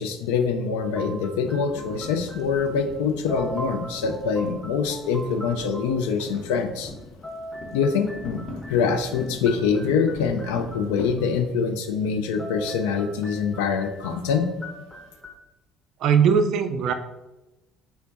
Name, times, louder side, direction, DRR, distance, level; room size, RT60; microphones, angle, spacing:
voice 1, 0.0-6.9 7.7-8.4 8.7-14.5, left 5 dB, 70° left, 5 dB, 0.4 m, -24 dB
sound 1, 0.8-3.0 3.3-6.0 7.0-11.2 12.2-15.4, right 1 dB, 15° left, 0.7 m, -41 dB
sound 2, 1.5-11.4, left 2 dB, 50° left, 0.9 m, -41 dB
voice 2, 16.0-16.9, right 6 dB, 55° right, 8 dB, 0.3 m, -19 dB
3.6 x 2.2 x 3.8 m, 0.98 s
figure-of-eight pair, 55°, 0 cm